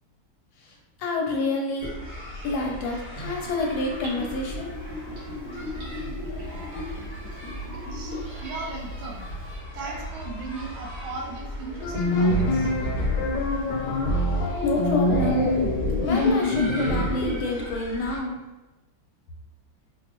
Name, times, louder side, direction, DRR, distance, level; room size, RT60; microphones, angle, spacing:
voice 1, 0.6-1.9 2.4-4.7 14.3-15.5 16.0-18.4, left 2 dB, 85° left, 0 dB, 1.5 m, -28 dB
sound 1, 1.8-18.2, equal, 5° left, 0.5 m, -38 dB
Gurgling / Bathtub (filling or washing), 3.2-8.3 8.6-8.7, left 1 dB, 60° right, 1.9 m, -38 dB
voice 2, 7.9-9.3 9.7-12.7, right 4 dB, 75° right, 0 dB, 1.4 m, -37 dB
sound 2, 11.8-17.4, left 2 dB, 65° left, 1.1 m, -24 dB
4.4 x 2.0 x 2.9 m, 1.1 s
omnidirectional pair, 2.3 m